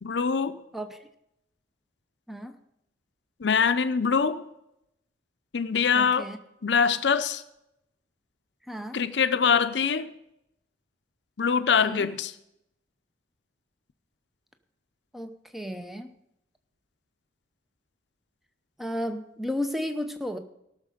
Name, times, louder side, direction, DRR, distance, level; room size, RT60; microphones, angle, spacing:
voice 1, 0.0-0.6 3.4-4.4 5.5-6.3 6.6-7.4 8.9-10.1 11.4-12.3, left 6 dB, 70° left, 12 dB, 0.6 m, -24 dB
voice 2, 6.0-6.4 8.7-9.0 11.8-12.1 15.1-16.1 18.8-20.4, left 1 dB, ahead, 7 dB, 0.8 m, -33 dB
17.0 x 6.5 x 5.1 m, 0.81 s
head